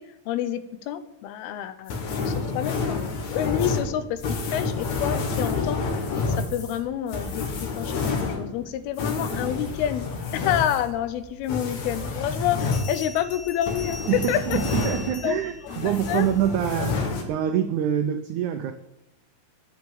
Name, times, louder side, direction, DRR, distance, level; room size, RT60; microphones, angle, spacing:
voice 1, 0.0-3.0 3.3-5.8 6.3-10.1 10.3-14.0 14.3-14.6 15.2-15.4 15.7-16.3, left 10 dB, 90° left, 12 dB, 2.9 m, -28 dB
sound 1, 1.9-15.4 15.7-17.2, left 4 dB, 55° left, 2.8 m, -29 dB
Bell, 12.6-16.5, left 3 dB, 70° left, 3.3 m, -41 dB
voice 2, 14.1-18.7, right 10 dB, 85° right, 8 dB, 1.7 m, -26 dB
10.5 x 8.2 x 7.8 m, 0.87 s
omnidirectional pair, 4.4 m